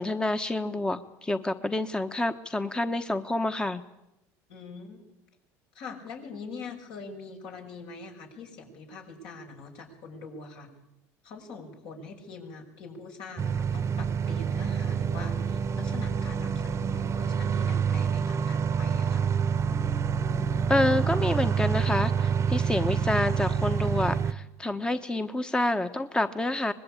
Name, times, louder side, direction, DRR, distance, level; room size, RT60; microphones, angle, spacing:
voice 1, 0.0-3.8 20.7-26.7, left 2 dB, 10° left, 9 dB, 1.1 m, -28 dB
voice 2, 4.5-5.0 5.7-10.7 11.2-19.3, left 4 dB, 70° left, 2 dB, 6.0 m, -43 dB
sound 1, 13.4-24.3, right 6 dB, 35° right, 1.0 m, -27 dB
24.0 x 20.5 x 8.7 m, 0.92 s
supercardioid pair, 95°, 8 cm